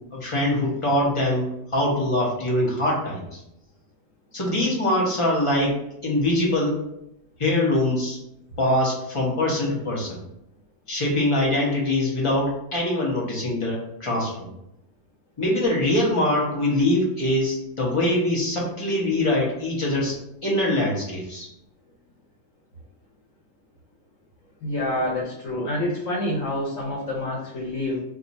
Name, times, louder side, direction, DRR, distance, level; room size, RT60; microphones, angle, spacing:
voice 1, 0.1-1.5 1.7-3.4 4.3-6.8 7.4-8.2 8.6-10.2 10.9-14.5 15.4-20.2 20.4-21.5, left 1 dB, 30° left, -4 dB, 0.8 m, -23 dB
voice 2, 24.6-28.0, left 1 dB, 80° left, -4 dB, 1.1 m, -27 dB
2.4 x 2.4 x 4.0 m, 0.81 s
omnidirectional pair, 1.3 m